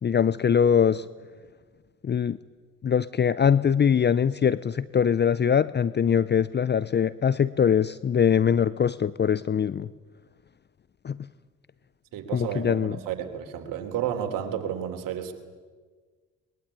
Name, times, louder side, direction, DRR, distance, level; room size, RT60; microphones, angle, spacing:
voice 1, 0.0-1.1 2.0-2.4 2.8-9.9 11.0-11.2 12.3-13.0, left 7 dB, 30° left, 18 dB, 0.7 m, -22 dB
voice 2, 12.1-15.3, right 9 dB, 70° right, 6 dB, 3.5 m, -31 dB
21.5 x 21.5 x 9.9 m, 1.5 s
hypercardioid pair, 60°, 34 cm